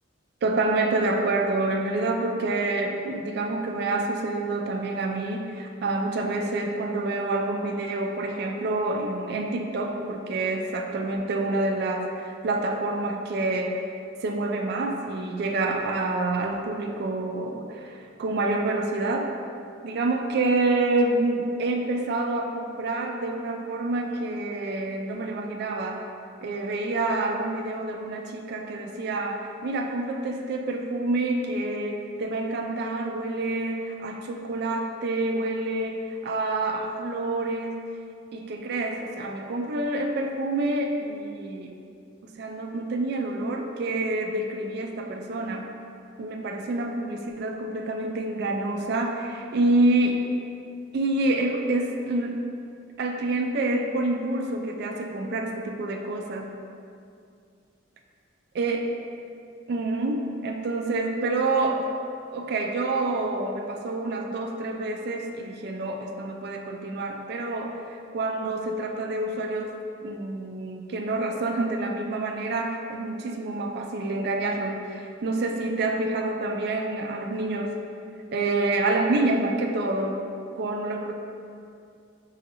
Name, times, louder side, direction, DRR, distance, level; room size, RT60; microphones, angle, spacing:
voice 1, 0.4-13.8 14.2-19.3 19.8-26.1 26.4-37.8 38.3-41.8 42.2-45.7 46.2-50.3 50.9-52.4 53.0-56.6 58.6-58.9 59.7-61.9 62.3-77.8 78.3-80.3 80.5-81.1, right 2 dB, 55° right, 2 dB, 0.3 m, -27 dB
5.5 x 2.6 x 2.8 m, 2.4 s
head